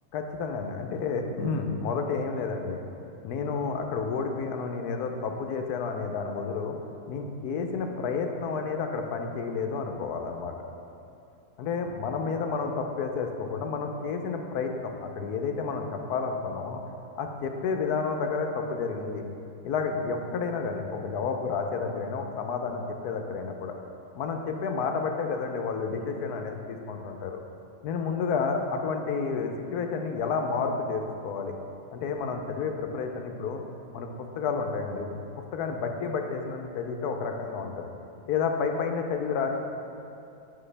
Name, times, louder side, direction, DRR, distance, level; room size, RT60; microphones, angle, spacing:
voice 1, 0.1-2.8 3.2-6.8 7.1-10.5 11.6-16.8 17.2-19.2 19.6-23.7 24.1-27.4 27.8-31.5 31.9-33.6 33.9-34.1 34.4-35.1 35.5-37.9 38.3-39.5, left 5 dB, 85° left, 4 dB, 1.2 m, -30 dB
9.5 x 5.9 x 3.3 m, 2.7 s
omnidirectional pair, 1.6 m